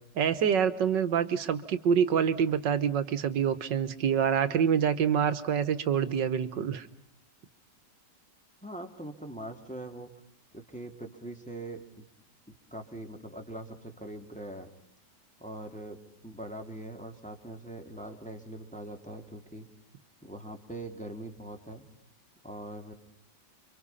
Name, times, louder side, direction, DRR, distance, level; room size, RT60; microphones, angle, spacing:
voice 1, 0.2-6.9, right 7 dB, 80° right, 13 dB, 2.0 m, -26 dB
voice 2, 8.6-10.1 10.5-12.1 12.5-14.7 15.4-19.7 20.2-21.9 22.4-22.9, right 1 dB, 5° left, 2 dB, 2.9 m, -42 dB
29.0 x 25.0 x 5.7 m, 0.72 s
omnidirectional pair, 1.9 m